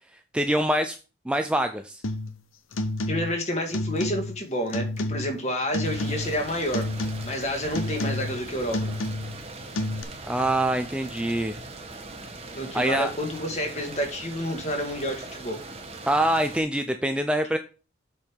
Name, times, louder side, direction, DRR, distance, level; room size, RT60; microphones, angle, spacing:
voice 1, 0.3-1.0 1.3-2.0 10.2-11.6 12.7-13.1 16.1-17.6, right 1 dB, 5° right, 7 dB, 0.4 m, -24 dB
sound 1, 2.0-2.4 2.7-3.4 3.7-4.4 4.7-5.4 5.7-6.4 6.7-7.4 7.7-8.4 8.7-9.4 9.7-10.0, left 2 dB, 80° left, 0.8 m, -30 dB
voice 2, 3.1-6.9 7.2-8.9 12.5-15.6, equal, 35° left, 3 dB, 1.9 m, -29 dB
sound 2, 5.8-16.6, right 2 dB, 30° right, 1.2 m, -40 dB
7.6 x 5.4 x 4.7 m, 0.33 s
head